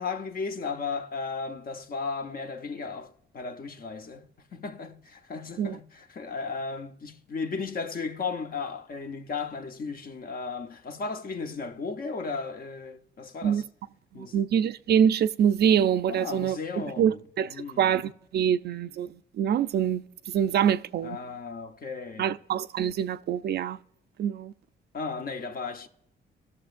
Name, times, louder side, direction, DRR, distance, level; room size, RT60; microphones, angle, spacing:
voice 1, 0.0-13.6 14.1-14.5 16.1-17.2 17.5-18.0 21.0-22.3 24.9-25.9, left 4 dB, 45° left, 0.9 m, -35 dB
voice 2, 14.2-16.6 17.0-17.5 17.8-21.2 22.2-23.8 24.2-24.5, right 8 dB, 55° right, 0.4 m, -25 dB
17.0 x 6.7 x 2.5 m
cardioid pair, 90°, 20 cm